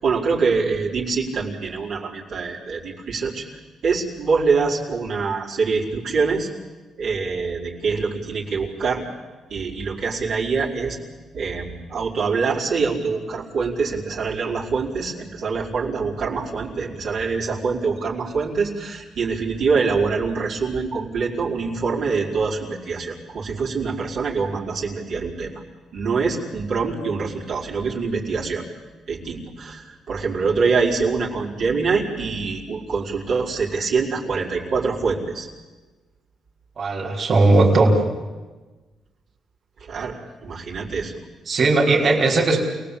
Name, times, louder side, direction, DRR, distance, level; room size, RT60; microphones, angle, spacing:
voice 1, 0.0-3.4 3.8-6.5 7.0-9.0 9.5-11.0 11.3-25.5 25.9-28.6 29.1-35.5 39.8-41.2, right 4 dB, 65° right, -5 dB, 5.1 m, -24 dB
voice 2, 36.8-38.0 41.5-42.6, right 2 dB, 45° right, -2 dB, 5.1 m, -17 dB
28.5 x 19.0 x 8.6 m, 1.3 s
cardioid pair, 90°, 0 cm